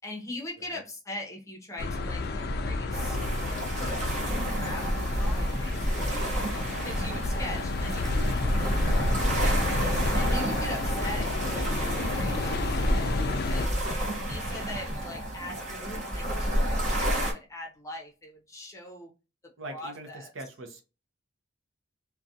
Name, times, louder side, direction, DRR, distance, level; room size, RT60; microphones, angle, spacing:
voice 1, 0.0-4.2 4.5-4.9 5.2-6.3 6.8-9.6 10.1-13.9 14.3-19.1 19.7-20.3, left 1 dB, 15° left, 0.7 m, -42 dB
sound 1, 1.8-13.7, left 2 dB, 50° left, 0.3 m, -31 dB
sound 2, 2.9-17.3, right 1 dB, 35° right, 0.9 m, -30 dB
sound 3, 4.1-16.3 16.5-16.7, equal, 85° right, 1.1 m, -38 dB
voice 2, 10.3-10.6 19.6-20.8, right 2 dB, 70° right, 0.6 m, -41 dB
2.4 x 2.2 x 2.6 m
head